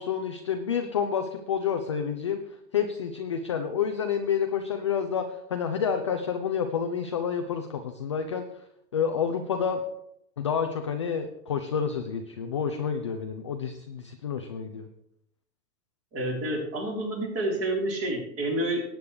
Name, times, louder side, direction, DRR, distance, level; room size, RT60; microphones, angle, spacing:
voice 1, 0.0-2.4 2.7-8.4 8.9-9.8 10.4-14.9, left 7 dB, 20° left, 6 dB, 0.3 m, -29 dB
voice 2, 16.1-18.8, right 1 dB, 30° right, -1 dB, 4.1 m, -29 dB
19.0 x 9.0 x 3.3 m, 0.77 s
figure-of-eight pair, 100°, 50 cm